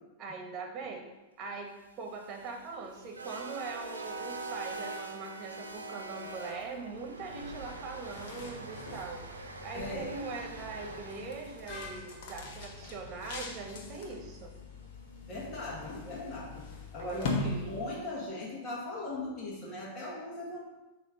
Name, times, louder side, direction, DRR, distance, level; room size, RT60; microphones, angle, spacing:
voice 1, 0.2-1.0 1.4-9.2 9.6-14.5 17.0-17.4, right 4 dB, 35° right, 2 dB, 1.4 m, -41 dB
sound 1, 1.9-14.1, right 3 dB, 85° right, 0.8 m, -44 dB
sound 2, 7.9-18.2, left 2 dB, 55° left, 1.2 m, -41 dB
voice 2, 9.7-10.2 11.7-11.9 15.3-16.7 16.9-20.6, left 2 dB, 30° left, -5 dB, 2.0 m, -39 dB
7.1 x 3.3 x 5.2 m, 1.1 s
figure-of-eight pair, 95°, 0 cm